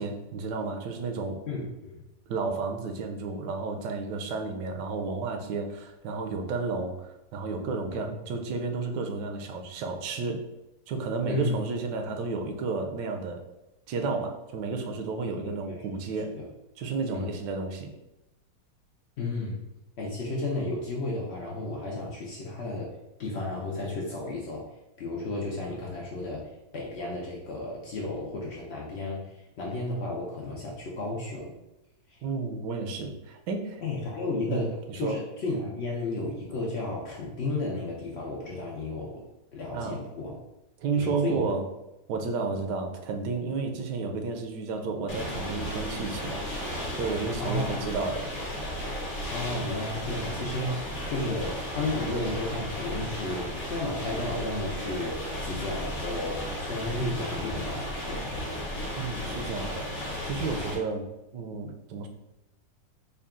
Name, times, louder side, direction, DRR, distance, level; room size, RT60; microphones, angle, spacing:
voice 1, 0.0-1.4 2.3-10.4 10.9-13.4 13.9-16.4 16.8-17.9 32.2-33.8 34.5-34.6 34.9-35.2 39.7-40.0 40.8-41.7 42.1-46.4 46.9-48.3 59.0-59.9 60.2-61.1 61.3-62.1, right 4 dB, 80° right, 4 dB, 1.2 m, -32 dB
voice 2, 1.5-2.0 7.9-8.0 11.3-11.5 15.4-15.8 16.3-16.5 17.1-17.3 19.2-19.6 20.0-22.9 23.2-24.7 25.0-31.6 32.1-32.2 33.8-39.2 39.5-40.4 41.0-41.5 47.4-47.8 49.3-58.3, left 2 dB, 85° left, -3 dB, 0.5 m, -33 dB
sound 1, 45.1-60.8, equal, 50° left, 1.1 m, -34 dB
3.7 x 2.3 x 3.6 m, 0.92 s
omnidirectional pair, 1.9 m